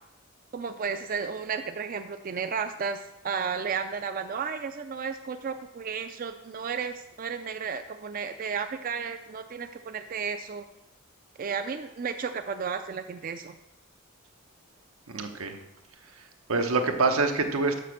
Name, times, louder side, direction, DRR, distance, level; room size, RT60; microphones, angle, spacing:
voice 1, 0.5-10.7 11.4-13.6, right 6 dB, 40° right, 8 dB, 0.4 m, -33 dB
voice 2, 15.1-15.6 16.5-17.8, right 3 dB, 90° right, 5 dB, 1.0 m, -25 dB
6.6 x 6.0 x 6.5 m, 0.88 s
head